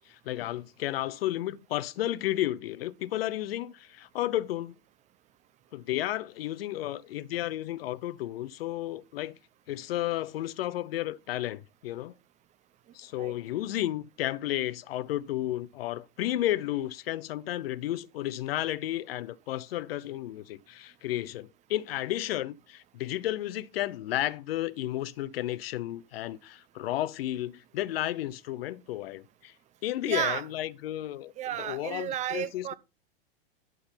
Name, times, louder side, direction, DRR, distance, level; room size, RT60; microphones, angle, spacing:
voice 1, 0.1-4.8 5.7-9.4 9.7-12.2 12.9-29.5 29.8-31.3 31.6-32.7, left 14 dB, 75° left, 0.7 m, -32 dB
voice 2, 30.0-30.4 31.4-32.7, right 11 dB, 25° right, 0.6 m, -32 dB
11.5 x 3.9 x 5.7 m
hypercardioid pair, 125°, 30 cm